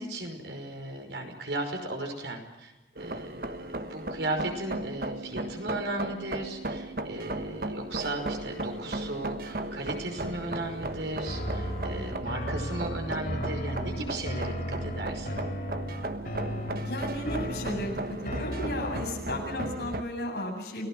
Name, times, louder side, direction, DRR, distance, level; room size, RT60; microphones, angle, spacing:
voice 1, 0.0-15.4, right 1 dB, 85° right, 4 dB, 5.6 m, -36 dB
sound 1, 3.0-20.0, right 2 dB, 55° right, 1.3 m, -36 dB
sound 2, 11.2-19.3, equal, 50° left, 3.8 m, -35 dB
voice 2, 16.8-20.9, left 1 dB, 65° left, 1 dB, 8.0 m, -34 dB
29.5 x 18.5 x 6.3 m, 1.1 s
head